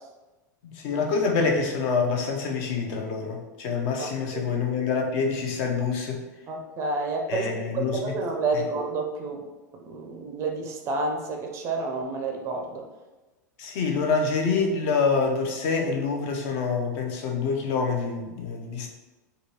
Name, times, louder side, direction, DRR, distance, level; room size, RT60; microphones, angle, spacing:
voice 1, 0.6-6.2 7.3-8.1 8.5-8.6 13.6-18.9, left 5 dB, 45° left, 2 dB, 0.6 m, -26 dB
voice 2, 4.0-4.5 6.5-9.4 9.9-12.8, right 3 dB, 30° right, 2 dB, 0.4 m, -30 dB
3.7 x 2.3 x 2.8 m, 1.1 s
figure-of-eight pair, 90°, 10 cm